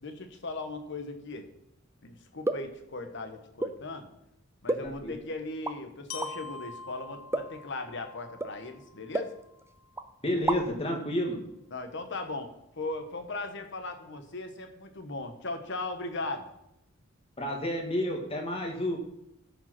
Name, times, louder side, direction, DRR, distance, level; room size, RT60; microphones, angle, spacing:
voice 1, 0.0-1.5 2.0-4.1 4.6-9.3 11.7-12.5 12.8-16.5, left 2 dB, 60° left, 6 dB, 1.2 m, -38 dB
sound 1, 2.4-2.8 3.6-3.8 4.7-5.2 5.6-5.8 6.2-6.3 7.3-7.6 8.4-8.6 9.1-9.7 10.0-10.1 10.3-10.8, right 2 dB, 10° right, 0.5 m, -32 dB
voice 2, 4.8-5.1 10.2-11.4 17.4-19.0, left 1 dB, 30° left, 1 dB, 2.0 m, -30 dB
Glockenspiel, 6.1-10.1, left 4 dB, 80° left, 1.0 m, -46 dB
14.0 x 5.1 x 6.0 m, 0.82 s
head